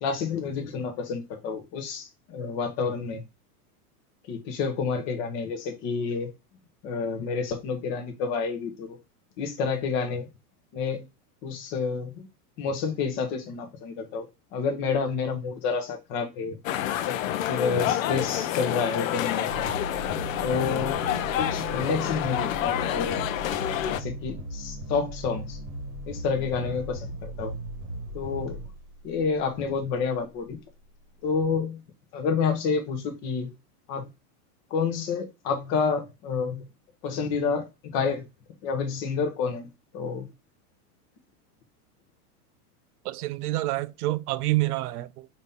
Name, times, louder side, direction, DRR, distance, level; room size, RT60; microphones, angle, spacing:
voice 1, 0.0-3.2 4.3-6.3 6.8-9.0 9.4-10.3 10.7-11.0 11.4-12.3 12.6-14.3 14.5-16.6 17.0-17.2 17.5-19.5 20.4-21.1 21.4-23.3 23.9-25.6 26.1-27.5 28.1-28.6 29.0-30.6 31.2-31.8 32.1-33.5 33.9-34.1 34.7-36.6 37.0-38.3 38.6-40.3, left 5 dB, 25° left, 0.7 m, -29 dB
sound 1, 16.6-24.0, left 11 dB, 60° left, 0.6 m, -28 dB
sound 2, 19.5-29.7, right 1 dB, 35° right, 1.1 m, -37 dB
voice 2, 43.0-45.3, right 18 dB, 80° right, 0.5 m, -27 dB
5.1 x 2.8 x 3.4 m
supercardioid pair, 170°, 45 cm